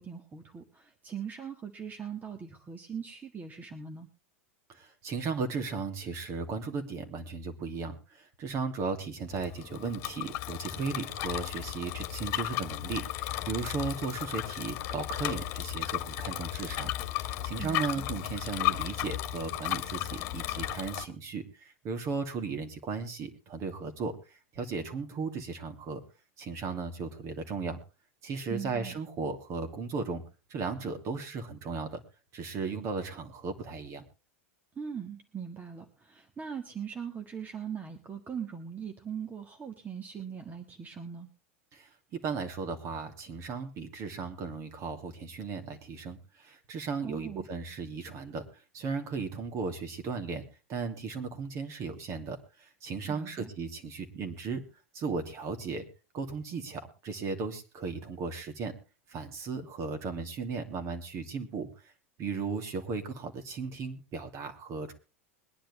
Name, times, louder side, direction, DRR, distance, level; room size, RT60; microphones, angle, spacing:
voice 1, 0.0-4.1 17.6-17.8 28.5-28.9 34.8-41.3 47.0-47.4 53.1-53.5, right 7 dB, 25° right, 5 dB, 1.7 m, -40 dB
voice 2, 4.7-26.0 26.4-27.8 28.2-30.2 30.5-32.0 32.3-34.0 41.7-50.4 50.7-54.6 54.9-55.8 56.1-58.7 59.1-61.9 62.2-64.9, right 4 dB, 40° right, 6 dB, 2.7 m, -36 dB
Bicycle, 9.3-21.0, left 16 dB, 50° left, 1.5 m, -35 dB
22.0 x 10.5 x 3.2 m, 0.30 s
hypercardioid pair, 95°, 7 cm